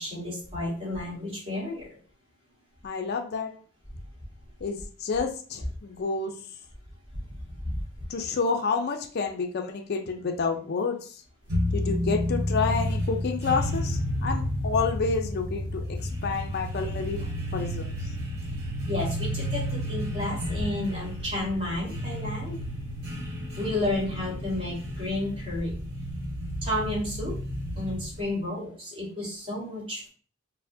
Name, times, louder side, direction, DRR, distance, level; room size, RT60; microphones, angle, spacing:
voice 1, 0.0-1.9 7.3-7.8 18.8-22.7 23.6-25.8 26.6-27.3 27.7-30.1, left 1 dB, 25° right, -5 dB, 1.4 m, -31 dB
voice 2, 2.8-3.5 4.6-6.3 8.1-11.2 11.7-17.3 17.5-18.0, left 4 dB, 50° left, 4 dB, 0.4 m, -29 dB
sound 1, 11.5-28.3, equal, 50° right, 1.2 m, -31 dB
4.2 x 2.1 x 2.6 m, 0.43 s
head